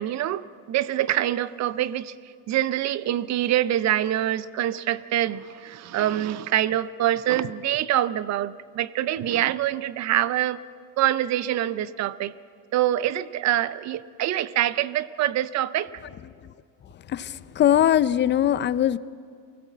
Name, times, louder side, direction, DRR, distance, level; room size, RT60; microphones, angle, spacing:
voice 1, 0.0-2.1 2.5-10.6 11.0-12.3 12.7-16.0, right 12 dB, 45° right, 16 dB, 0.6 m, -25 dB
voice 2, 17.1-19.0, left 11 dB, 30° left, 16 dB, 0.5 m, -21 dB
24.0 x 16.5 x 7.4 m, 2.2 s
cardioid pair, 135°, 39 cm